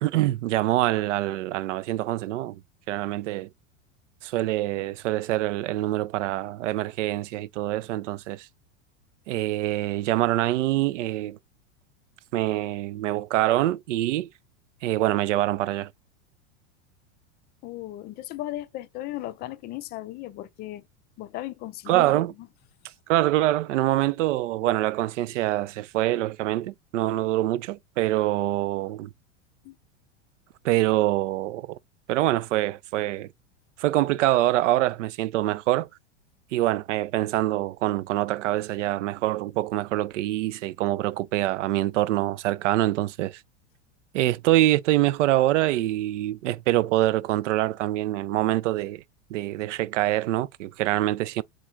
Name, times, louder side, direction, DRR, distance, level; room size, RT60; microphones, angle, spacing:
voice 1, 0.0-2.6 2.9-3.5 4.2-8.5 9.3-11.4 12.3-14.3 14.8-15.9 21.9-22.3 23.1-29.1 30.6-31.8 32.1-33.3 33.8-35.9 36.5-43.4 44.1-49.0 49.3-51.4, right 15 dB, 85° right, 0.5 m, -25 dB
voice 2, 17.6-20.9 21.2-22.1 22.4-22.5 29.6-29.8, left 15 dB, 30° left, 0.4 m, -36 dB
3.8 x 2.3 x 4.3 m
supercardioid pair, 130°, 36 cm